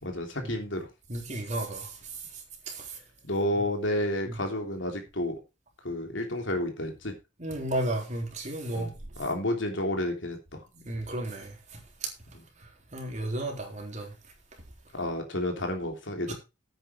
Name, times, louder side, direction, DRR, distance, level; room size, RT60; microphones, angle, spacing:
voice 1, 0.0-0.9 3.3-5.4 5.8-7.1 8.7-8.9 9.2-10.6 14.9-16.3, left 1 dB, 80° left, 3.3 m, -30 dB
voice 2, 1.1-3.0 4.3-4.4 7.4-8.9 10.8-12.1 12.6-14.1 16.3-16.4, right 1 dB, 40° right, 3.6 m, -34 dB
9.8 x 9.1 x 4.5 m
head